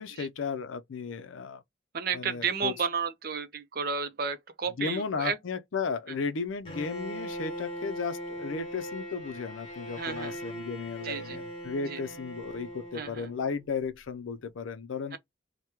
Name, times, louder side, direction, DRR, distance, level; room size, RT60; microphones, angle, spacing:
voice 1, 0.0-1.6 2.1-2.7 4.8-15.2, left 5 dB, 85° left, 0.5 m, -34 dB
voice 2, 1.9-5.4 6.1-6.2 10.0-10.4 11.0-11.4 11.8-12.0 12.9-13.3 15.1-15.2, right 6 dB, 50° right, 0.5 m, -32 dB
Bowed string instrument, 6.7-13.6, equal, 25° left, 1.2 m, -40 dB
2.9 x 2.1 x 3.4 m
head